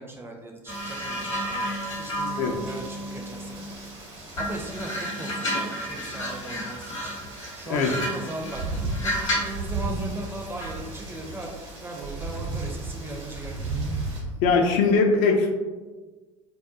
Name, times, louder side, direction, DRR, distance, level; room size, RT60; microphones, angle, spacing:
voice 1, 0.0-1.7 2.0-3.7 4.4-7.2 7.5-8.6 9.0-11.5 11.8-13.8, right 2 dB, 15° right, 0 dB, 0.5 m, -38 dB
sound 1, 0.7-3.9 4.3-9.6 10.6-10.8, equal, 80° left, 0.7 m, -32 dB
Rain, 0.7-14.2, right 1 dB, 65° right, 0.9 m, -44 dB
sound 2, 8.4-9.0 9.3-11.5 12.0-14.9, right 3 dB, 85° right, 0.9 m, -33 dB
voice 2, 14.4-15.5, left 4 dB, 50° left, 3 dB, 0.4 m, -20 dB
2.3 x 2.1 x 2.7 m, 1.3 s
figure-of-eight pair, 60°, 16 cm